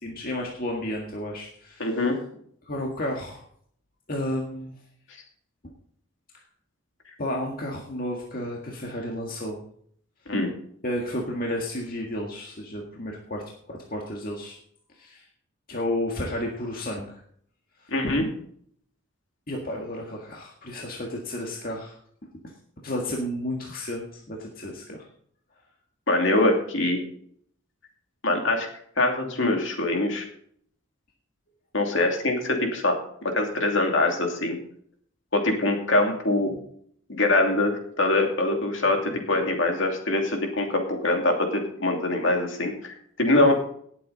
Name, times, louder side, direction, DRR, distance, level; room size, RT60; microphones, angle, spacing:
voice 1, 0.0-2.1 2.6-3.4 4.1-4.8 7.2-9.6 10.8-14.6 14.9-15.3 15.7-17.2 17.8-17.9 19.5-21.9 22.8-25.1 43.4-43.5, left 1 dB, 45° left, -1 dB, 1.8 m, -32 dB
voice 2, 1.8-2.2 10.3-10.5 17.9-18.3 26.1-27.0 28.2-28.7 29.0-30.3 31.7-34.6 35.3-36.6 37.1-43.5, left 2 dB, 65° left, 3 dB, 2.7 m, -23 dB
18.5 x 7.8 x 4.1 m, 0.63 s
head